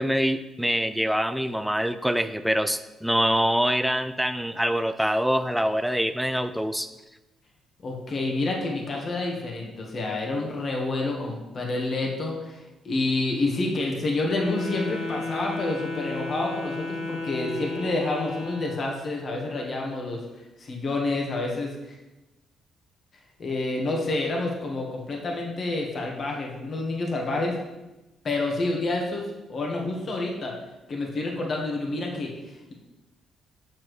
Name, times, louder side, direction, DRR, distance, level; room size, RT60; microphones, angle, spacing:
voice 1, 0.0-6.9, equal, ahead, 10 dB, 0.4 m, -25 dB
voice 2, 7.8-20.2 20.6-22.0 23.4-27.6 28.2-30.5 30.9-32.7, left 2 dB, 45° left, 0 dB, 1.3 m, -28 dB
Wind instrument woodwind instrument, 14.3-18.9, left 3 dB, 80° left, 1.6 m, -33 dB
6.9 x 5.9 x 3.2 m, 1.0 s
cardioid pair, 90°, 0 cm